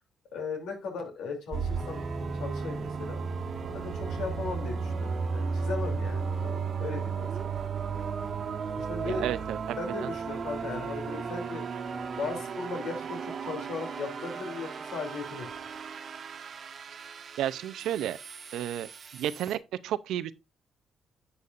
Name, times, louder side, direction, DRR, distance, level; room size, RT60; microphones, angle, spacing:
voice 1, 0.3-3.2 3.7-7.3 8.7-9.2 9.8-11.8 12.2-15.5, left 4 dB, 80° left, 2.9 m, -37 dB
sound 1, 1.5-19.6, right 5 dB, 50° right, 1.2 m, -35 dB
voice 2, 9.1-10.1 17.4-18.2 18.5-20.3, right 11 dB, 85° right, 0.5 m, -32 dB
10.5 x 7.0 x 2.5 m
cardioid pair, 90°, 0 cm